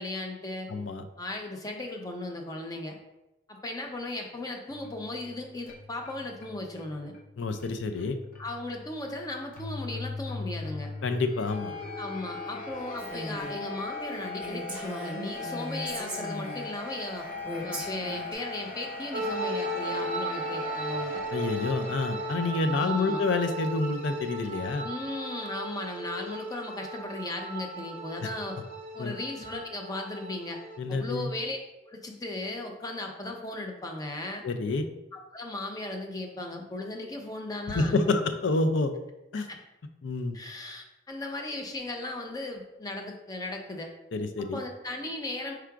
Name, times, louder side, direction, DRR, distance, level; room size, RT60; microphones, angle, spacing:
voice 1, 0.0-0.7 1.2-3.0 3.5-7.1 8.4-10.9 12.0-17.3 17.6-21.2 22.8-23.2 24.8-28.6 28.9-30.6 30.9-31.6 31.9-34.4 35.1-38.2 39.5-39.6 40.3-43.9 44.4-45.5, left 2 dB, 20° left, 2 dB, 0.5 m, -36 dB
voice 2, 0.7-1.0 7.4-8.2 11.0-11.7 21.3-24.9 29.0-29.1 30.8-31.3 34.4-34.8 37.7-38.9 39.3-39.4 40.0-40.4 44.1-44.6, left 3 dB, 75° left, 8 dB, 0.4 m, -28 dB
sound 1, 4.7-22.7, left 3 dB, 45° left, 0.8 m, -40 dB
Female speech woman speaking, 13.0-13.6 14.0-14.1 14.4-16.7 17.4-18.3, equal, 10° right, 1.0 m, -38 dB
sound 2, 19.1-30.8, right 1 dB, 40° right, 0.5 m, -36 dB
4.7 x 2.4 x 4.5 m, 0.95 s
head